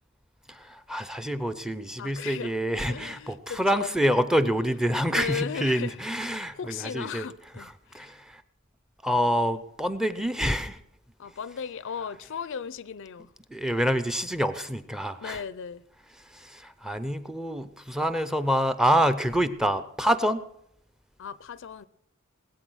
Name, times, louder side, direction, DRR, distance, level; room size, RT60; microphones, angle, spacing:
voice 1, 0.5-7.3 7.6-8.4 9.0-10.8 12.0-12.1 13.5-15.5 16.2-20.4, equal, 5° right, 0.6 m, -27 dB
voice 2, 2.0-2.5 2.8-3.9 5.1-6.0 6.3-8.1 11.2-13.3 15.2-15.8 21.2-21.9, left 7 dB, 60° left, 0.5 m, -36 dB
19.0 x 8.4 x 6.2 m
head